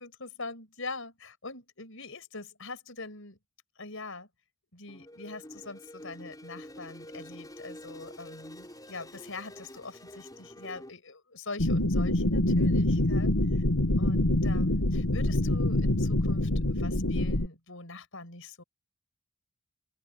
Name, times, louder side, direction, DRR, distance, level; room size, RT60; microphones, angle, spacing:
voice 1, 0.0-3.4 3.8-4.3 4.7-13.4 14.0-18.6, left 3 dB, 65° left, 5.8 m, -43 dB
sound 1, 4.9-10.9, left 1 dB, 15° left, 5.1 m, -47 dB
sound 2, 11.6-17.5, left 1 dB, 85° left, 1.9 m, -25 dB
head